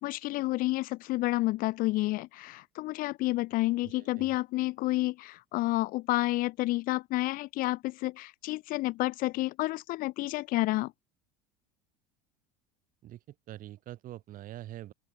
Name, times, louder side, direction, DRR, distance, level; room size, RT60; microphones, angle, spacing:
voice 1, 0.0-10.9, left 19 dB, 50° left, 0.5 m, -30 dB
voice 2, 3.8-4.4 13.0-14.9, right 13 dB, 50° right, 4.5 m, -45 dB
hypercardioid pair, 80°, 18 cm